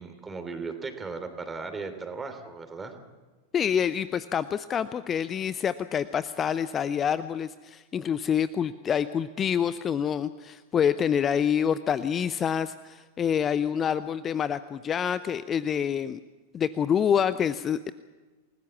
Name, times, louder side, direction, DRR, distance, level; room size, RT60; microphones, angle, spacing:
voice 1, 0.0-2.9, right 4 dB, 15° right, 7 dB, 3.3 m, -37 dB
voice 2, 3.5-16.2 16.5-17.9, left 8 dB, 25° left, 15 dB, 0.7 m, -27 dB
29.0 x 19.5 x 7.3 m, 1.3 s
figure-of-eight pair, 90°, 0 cm